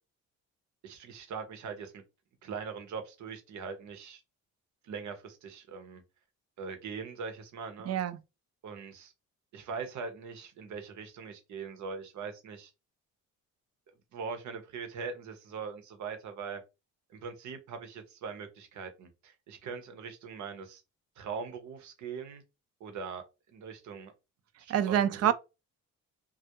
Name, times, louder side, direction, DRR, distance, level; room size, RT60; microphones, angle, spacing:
voice 1, 0.8-2.0 2.4-4.2 4.8-6.0 6.6-8.0 8.6-9.1 9.5-12.7 14.1-16.6 17.1-20.8 21.2-22.4 22.8-23.2 23.5-24.1 24.6-25.3, right 5 dB, 70° right, 0.8 m, -41 dB
voice 2, 7.9-8.2 24.7-25.3, right 10 dB, 55° right, 0.4 m, -26 dB
2.3 x 2.0 x 2.8 m
cardioid pair, 90°, 30 cm